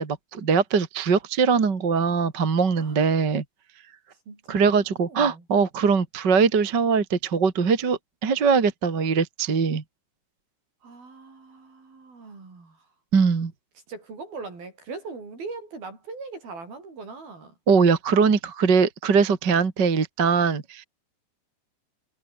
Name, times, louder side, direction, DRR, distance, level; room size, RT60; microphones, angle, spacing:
voice 1, 0.0-3.4 4.5-9.8 13.1-13.5 17.7-20.8, right 5 dB, 30° right, 2.1 m, -21 dB
voice 2, 4.3-4.6 5.0-5.5 10.8-12.9 13.9-17.6, right 4 dB, 55° right, 9.7 m, -40 dB
omnidirectional pair, 5.2 m